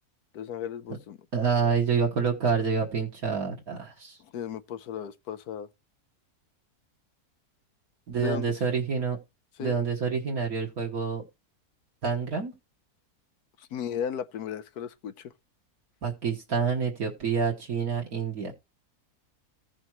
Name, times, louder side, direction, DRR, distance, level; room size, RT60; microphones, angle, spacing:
voice 1, 0.3-1.2 4.2-5.7 8.1-8.5 9.6-9.8 13.6-15.3, left 8 dB, 80° left, 1.3 m, -36 dB
voice 2, 1.3-4.2 8.1-9.2 9.6-11.2 12.0-12.5 16.0-18.5, right 5 dB, 70° right, 1.9 m, -27 dB
15.5 x 6.1 x 3.0 m
omnidirectional pair, 1.6 m